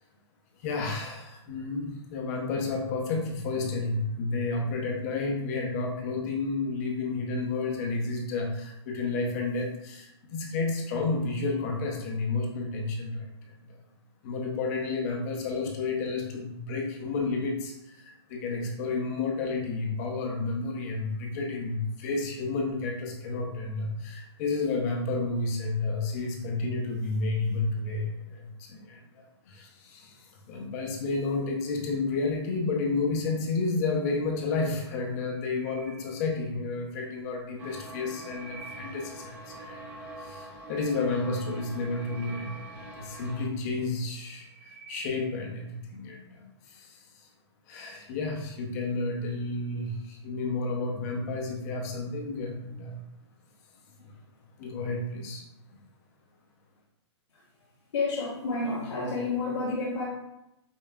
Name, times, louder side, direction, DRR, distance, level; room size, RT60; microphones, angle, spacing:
voice 1, 0.6-13.8 14.2-47.0 47.7-53.0 54.0-54.1 54.6-55.4 55.7-55.8, left 3 dB, 35° left, 1 dB, 0.7 m, -31 dB
sound 1, 35.1-36.8 37.7-39.5 41.5-43.6 44.1-45.6, right 4 dB, 40° right, 0.6 m, -50 dB
sound 2, 37.6-43.5, right 2 dB, 10° right, 0.3 m, -44 dB
voice 2, 57.9-60.1, left 3 dB, 75° left, -8 dB, 1.2 m, -30 dB
5.5 x 2.2 x 2.3 m, 0.87 s
hypercardioid pair, 150°, 15 cm